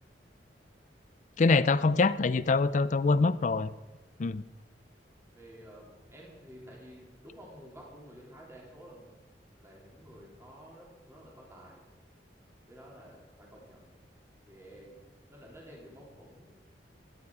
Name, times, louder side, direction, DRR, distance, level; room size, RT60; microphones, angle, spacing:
voice 1, 1.4-3.7 4.2-4.4, left 3 dB, 45° left, 17 dB, 0.4 m, -24 dB
voice 2, 5.3-9.2 9.6-11.8 12.7-13.9 14.5-15.0 15.3-16.5, equal, 15° right, -3 dB, 3.4 m, -51 dB
17.0 x 11.0 x 4.8 m, 1.2 s
head